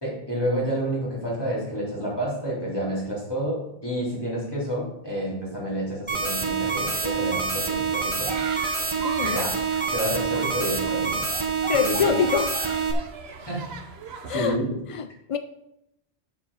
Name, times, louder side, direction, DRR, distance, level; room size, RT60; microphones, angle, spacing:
voice 1, 0.0-8.3 9.2-9.6 9.9-11.2 11.7-12.2 13.5-13.6 14.3-14.8, right 1 dB, 20° left, 3.7 m, -29 dB
sound 1, 6.1-12.9, right 5 dB, 30° right, 1.1 m, -27 dB
sound 2, 6.6-14.6, right 4 dB, 75° right, 1.1 m, -38 dB
voice 2, 9.0-9.4 11.7-12.6 14.3-14.6 14.9-15.4, left 8 dB, 55° left, 0.3 m, -25 dB
7.5 x 7.2 x 5.5 m
omnidirectional pair, 1.1 m